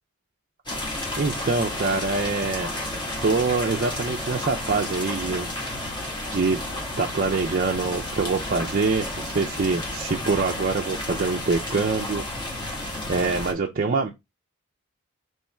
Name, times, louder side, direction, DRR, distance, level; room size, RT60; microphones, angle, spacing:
sound 1, 0.6-13.5, left 1 dB, 20° left, 1.2 m, -32 dB
voice 1, 1.2-2.7 3.2-5.5 6.3-6.6 7.0-12.2 13.1-14.1, right 4 dB, 40° right, 0.5 m, -25 dB
3.4 x 3.1 x 4.3 m
head